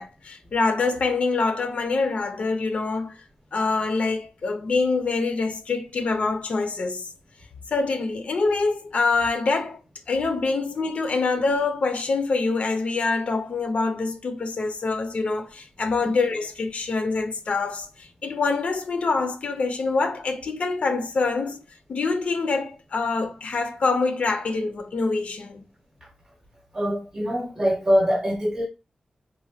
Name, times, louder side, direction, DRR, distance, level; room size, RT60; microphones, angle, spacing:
voice 1, 0.0-3.2 3.5-7.1 7.7-9.8 10.1-21.6 21.9-25.6, left 3 dB, 65° left, 0.5 m, -25 dB
voice 2, 26.7-28.7, equal, 25° right, 0.7 m, -23 dB
3.0 x 2.2 x 2.7 m
wide cardioid pair, 145°, 2 cm